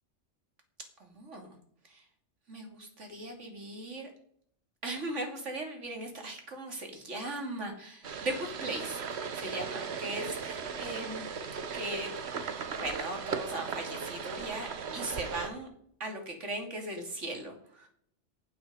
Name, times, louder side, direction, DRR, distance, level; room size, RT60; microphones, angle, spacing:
voice 1, 1.0-1.5 1.9-2.0 2.5-4.1 4.8-11.3 11.7-12.1 12.7-15.7 16.0-17.9, right 1 dB, 80° right, 3 dB, 2.8 m, -38 dB
sound 1, 8.0-15.5, right 6 dB, 65° right, 1.3 m, -37 dB
11.0 x 9.6 x 4.9 m, 0.66 s
omnidirectional pair, 1.2 m